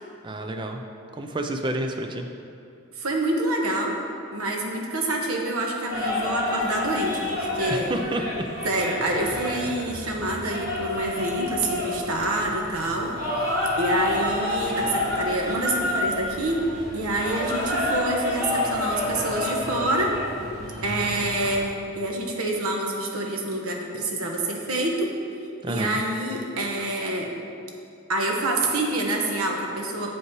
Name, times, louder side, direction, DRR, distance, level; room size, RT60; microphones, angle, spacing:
voice 1, 0.2-0.8 1.1-2.3 7.7-8.5 9.3-9.6 25.6-26.0, right 1 dB, 20° right, 5 dB, 0.4 m, -30 dB
voice 2, 2.9-4.0 4.3-7.9 8.6-13.4 13.8-16.6 16.9-20.1 20.8-25.2 25.7-27.3 28.1-30.1, right 1 dB, 90° right, 1 dB, 1.0 m, -27 dB
sound 1, 5.9-21.6, left 1 dB, 45° right, 1.3 m, -29 dB
7.2 x 5.5 x 4.6 m, 2.5 s
head